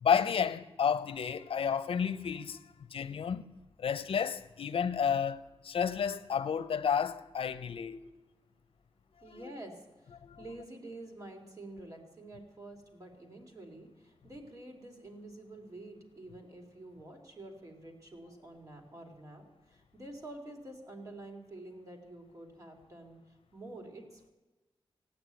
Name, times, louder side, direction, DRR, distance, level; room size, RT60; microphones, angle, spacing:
voice 1, 0.0-2.6 2.9-3.5 3.8-8.0 10.2-10.4, left 7 dB, 75° left, 0.6 m, -31 dB
voice 2, 9.2-23.2 23.5-24.3, right 2 dB, 35° right, 2.9 m, -48 dB
16.5 x 8.6 x 8.9 m
wide cardioid pair, 140°, 9 cm